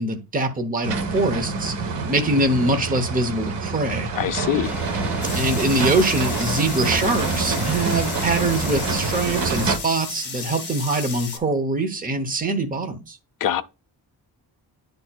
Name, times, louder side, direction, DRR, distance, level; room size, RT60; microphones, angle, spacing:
voice 1, 0.0-1.7 2.1-4.1 5.2-13.2, right 2 dB, 20° right, 0.9 m, -23 dB
sound 1, 0.8-9.8, right 4 dB, 75° right, 1.2 m, -27 dB
voice 2, 4.2-4.7 13.4-13.6, left 11 dB, 50° left, 0.6 m, -23 dB
Water, 4.6-9.7, left 1 dB, 5° right, 1.9 m, -34 dB
sound 2, 5.2-11.4, left 5 dB, 25° left, 1.6 m, -34 dB
10.5 x 4.3 x 2.3 m
wide cardioid pair, 170°, 43 cm